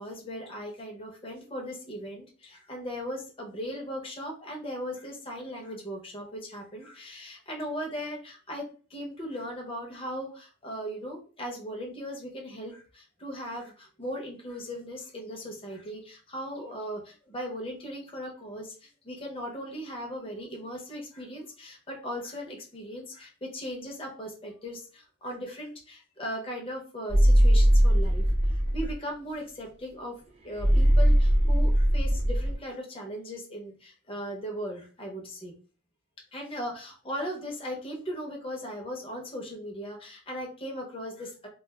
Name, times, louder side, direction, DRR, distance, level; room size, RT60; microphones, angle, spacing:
voice 1, 0.0-30.2 30.4-35.5 36.3-41.5, equal, 25° left, 0 dB, 0.7 m, -38 dB
sound 1, 27.1-28.9 30.6-32.5, equal, 30° right, 0.5 m, -20 dB
2.4 x 2.3 x 3.3 m, 0.38 s
head